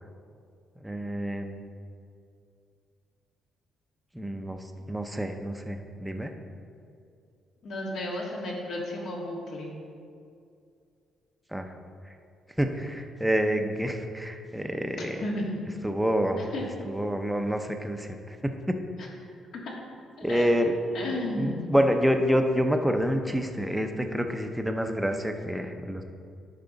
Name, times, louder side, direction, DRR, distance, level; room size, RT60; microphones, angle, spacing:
voice 1, 0.8-1.6 4.1-6.3 11.5-11.7 12.6-15.3 15.8-16.5 16.8-18.2 18.4-18.8 20.2-20.7 21.4-26.0, equal, 5° right, 5 dB, 0.6 m, -27 dB
voice 2, 7.6-9.7 15.2-15.5 16.4-16.7 19.0-19.1 19.6-19.7 20.2-20.5 20.9-21.6, left 1 dB, 65° left, -2 dB, 1.7 m, -33 dB
10.5 x 4.9 x 3.9 m, 2.4 s
cardioid pair, 120°, 0 cm